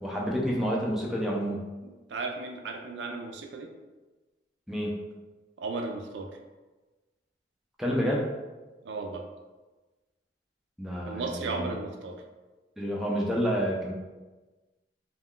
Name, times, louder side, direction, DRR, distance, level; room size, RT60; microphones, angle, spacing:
voice 1, 0.0-1.6 4.7-5.0 7.8-8.3 10.8-11.7 12.8-13.9, equal, ahead, -3 dB, 0.3 m, -29 dB
voice 2, 1.8-3.7 5.6-6.3 8.8-9.3 11.1-12.2, right 3 dB, 75° right, 4 dB, 0.4 m, -35 dB
2.2 x 2.2 x 3.5 m, 1.2 s
head